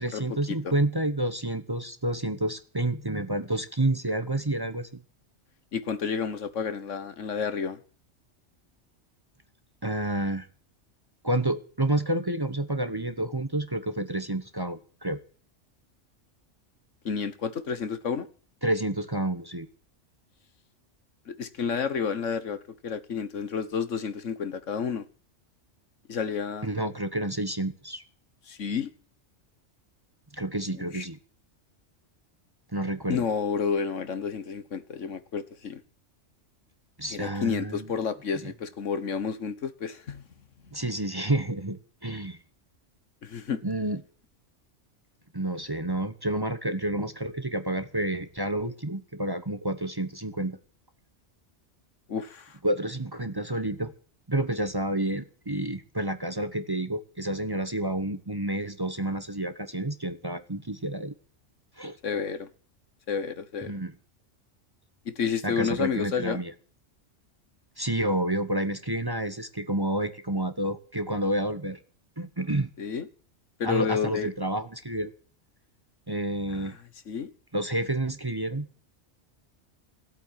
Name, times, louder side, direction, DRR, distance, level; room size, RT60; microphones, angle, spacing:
voice 1, 0.0-4.9 9.8-10.5 11.2-15.2 18.6-19.7 26.6-28.0 30.3-31.2 32.7-33.2 37.0-38.0 38.4-38.5 40.7-42.4 43.6-44.0 45.3-50.6 52.6-53.9 54.3-61.1 61.8-62.0 63.6-63.9 65.4-66.5 67.8-71.8 72.2-72.7 73.6-75.1 76.1-76.8 77.5-78.7, right 1 dB, 20° right, 1.0 m, -29 dB
voice 2, 5.7-7.8 17.0-18.3 21.3-25.1 26.1-26.7 28.5-28.9 30.7-31.1 33.1-35.8 37.1-40.2 43.2-43.6 52.1-52.6 62.0-62.5 63.1-63.7 65.0-66.4 72.8-73.1 73.6-74.3 76.5-76.7 77.1-77.3, left 6 dB, 85° left, 1.6 m, -30 dB
17.5 x 8.5 x 9.0 m
omnidirectional pair, 1.2 m